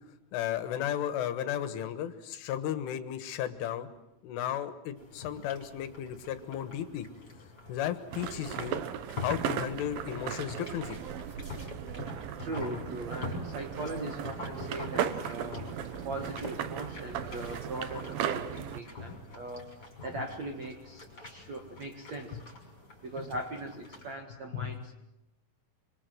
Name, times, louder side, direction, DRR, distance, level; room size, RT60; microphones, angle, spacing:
voice 1, 0.3-3.9 4.2-7.1 7.7-8.8 9.2-11.0 24.5-24.7, left 10 dB, 75° left, 11 dB, 3.6 m, -34 dB
sound 1, 5.0-24.1, left 3 dB, 20° left, 6.2 m, -46 dB
sound 2, 8.1-18.8, right 9 dB, 80° right, 2.1 m, -37 dB
sound 3, 8.5-9.7 10.1-11.8 12.5-12.7 13.0-14.2 14.5-15.4 15.7-16.2 16.4-17.6, left 1 dB, 10° right, 2.3 m, -51 dB
voice 2, 12.4-15.6 16.0-19.6 20.0-22.4 23.0-24.9, right 2 dB, 55° right, 3 dB, 2.0 m, -40 dB
26.0 x 25.5 x 7.8 m, 0.91 s
omnidirectional pair, 6.0 m